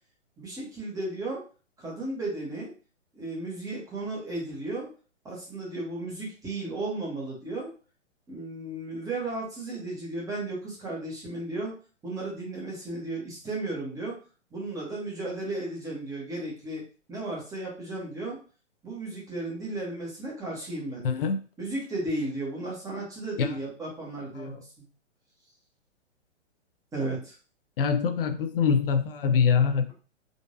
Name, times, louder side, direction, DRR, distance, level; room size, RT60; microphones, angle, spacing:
voice 1, 0.4-1.4 1.8-2.7 3.1-4.9 5.2-7.7 8.3-11.7 12.0-14.2 14.5-16.8 17.1-18.4 18.8-21.3 21.6-24.7 26.9-27.3, right 2 dB, 10° right, -4 dB, 1.0 m, -34 dB
voice 2, 21.0-21.4 23.4-23.6 24.4-24.5 27.8-29.9, left 6 dB, 50° left, 9 dB, 0.5 m, -24 dB
3.8 x 2.5 x 2.6 m, 0.37 s
figure-of-eight pair, 125°, 37 cm